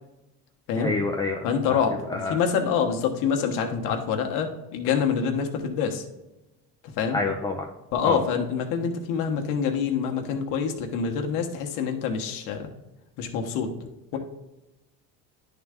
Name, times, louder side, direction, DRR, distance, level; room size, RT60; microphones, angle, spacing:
voice 1, 0.8-1.8 2.1-2.4 7.1-7.6 8.0-8.2, left 3 dB, 10° left, 1 dB, 0.6 m, -28 dB
voice 2, 1.4-6.0 6.8-7.2 7.9-12.7 13.2-13.7 14.1-14.2, left 6 dB, 75° left, 3 dB, 1.2 m, -26 dB
10.5 x 3.9 x 3.6 m, 0.97 s
cardioid pair, 115°, 32 cm